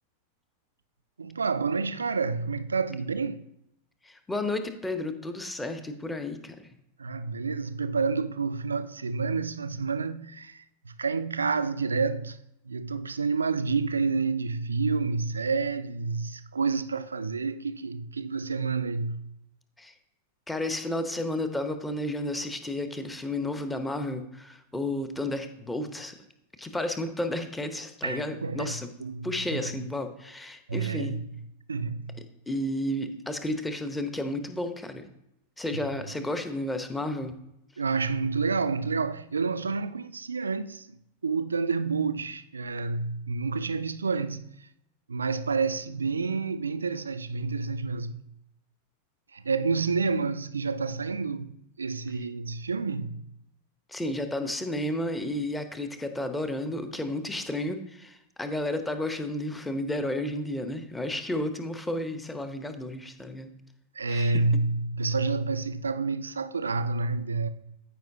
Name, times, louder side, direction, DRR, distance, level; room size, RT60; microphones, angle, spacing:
voice 1, 1.2-3.5 7.0-12.4 12.7-19.2 28.0-28.7 29.0-29.8 30.7-31.2 31.7-32.2 37.8-41.0 41.2-44.7 45.1-48.3 49.3-53.2 63.9-67.5, right 4 dB, 75° right, 0.4 m, -29 dB
voice 2, 4.0-6.7 19.8-20.0 20.5-26.2 26.6-28.9 29.2-31.2 32.5-35.1 35.6-37.4 53.9-63.5 64.1-64.4, left 1 dB, 10° left, 0.9 m, -32 dB
13.5 x 5.2 x 2.7 m
figure-of-eight pair, 90°, 0 cm